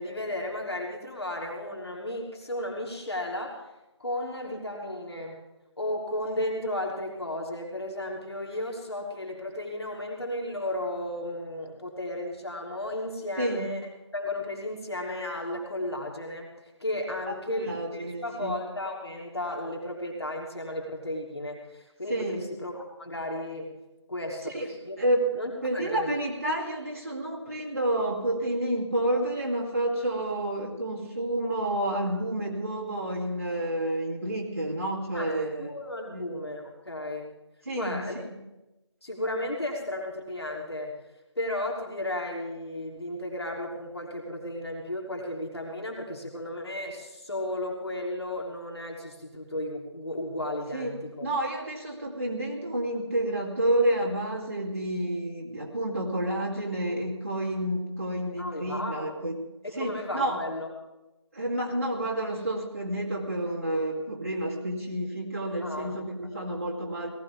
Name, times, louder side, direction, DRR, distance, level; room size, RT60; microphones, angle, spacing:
voice 1, 0.0-3.6 4.0-5.4 5.8-13.8 14.1-23.7 24.1-24.5 24.8-25.0 25.3-26.1 35.1-35.3 35.6-37.3 37.7-38.3 39.0-40.9 41.3-51.3 58.4-59.1 59.6-60.7 65.6-65.9 66.3-66.4, left 1 dB, 60° left, -1 dB, 3.3 m, -34 dB
voice 2, 13.4-13.7 17.3-18.6 22.1-22.4 24.5-24.7 25.0-25.3 25.6-35.8 36.1-36.3 37.7-38.3 50.7-50.9 51.2-59.4 59.8-60.4 61.3-67.1, right 1 dB, 30° right, -4 dB, 2.4 m, -29 dB
18.5 x 15.0 x 3.6 m, 1.0 s
figure-of-eight pair, 180°, 15 cm